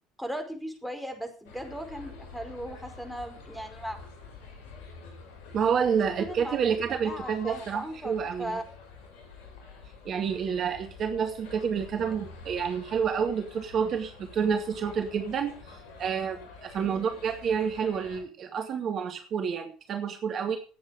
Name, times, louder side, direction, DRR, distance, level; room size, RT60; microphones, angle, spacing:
voice 1, 0.2-4.0 6.0-8.6 16.8-17.1, equal, ahead, 6 dB, 5.0 m, -38 dB
sound 1, 1.4-18.2, left 4 dB, 65° left, 7.2 m, -47 dB
voice 2, 5.5-8.6 10.0-20.6, right 7 dB, 45° right, 5 dB, 2.2 m, -29 dB
17.5 x 8.7 x 5.1 m, 0.39 s
hypercardioid pair, 65°, 0 cm